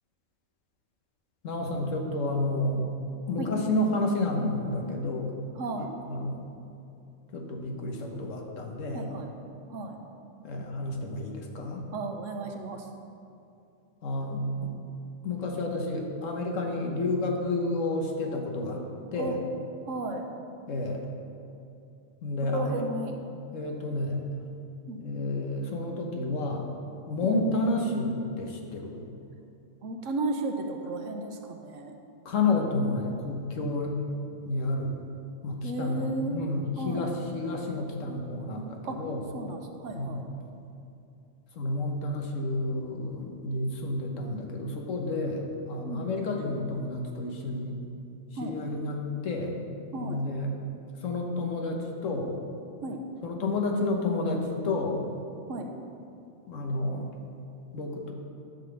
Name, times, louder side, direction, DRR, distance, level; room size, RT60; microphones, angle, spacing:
voice 1, 1.4-2.8 3.3-5.3 5.8-6.4 7.3-9.0 10.4-11.8 14.0-14.7 15.2-18.8 19.1-19.3 20.7-21.0 22.2-22.8 23.5-24.2 25.0-26.7 27.1-29.0 32.2-34.0 34.5-35.0 35.4-39.2 39.9-40.2 41.5-47.8 48.4-49.5 50.0-50.5 51.0-52.3 53.2-55.1 56.5-57.1 57.7-58.1, left 2 dB, 85° left, 1 dB, 1.3 m, -30 dB
voice 2, 5.6-5.9 8.9-9.3 9.7-10.0 11.9-12.9 19.2-19.3 19.8-20.2 22.4-23.2 24.9-25.0 27.2-27.4 29.8-32.0 35.6-36.4 36.8-37.1 38.8-39.0 39.3-40.2 45.9-46.1 48.4-48.5 49.9-50.2 52.8-53.0 55.5-55.7, right 2 dB, 80° right, 3 dB, 1.2 m, -34 dB
10.5 x 3.9 x 7.0 m, 2.6 s
omnidirectional pair, 1.3 m